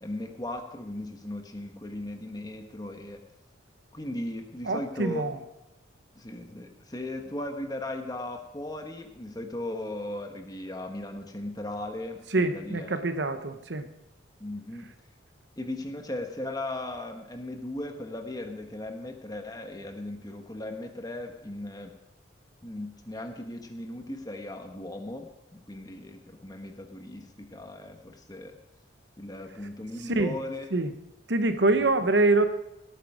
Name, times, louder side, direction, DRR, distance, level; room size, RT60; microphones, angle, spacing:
voice 1, 0.0-3.2 3.9-5.2 6.1-12.9 14.4-14.9 15.6-21.9 22.6-28.5 29.2-30.7 31.6-31.8, left 1 dB, 20° left, 5 dB, 1.3 m, -37 dB
voice 2, 4.7-5.4 12.3-13.9 30.2-30.3 30.7-30.9 31.3-32.5, right 2 dB, 65° right, 9 dB, 1.0 m, -25 dB
17.5 x 9.1 x 5.0 m, 0.90 s
head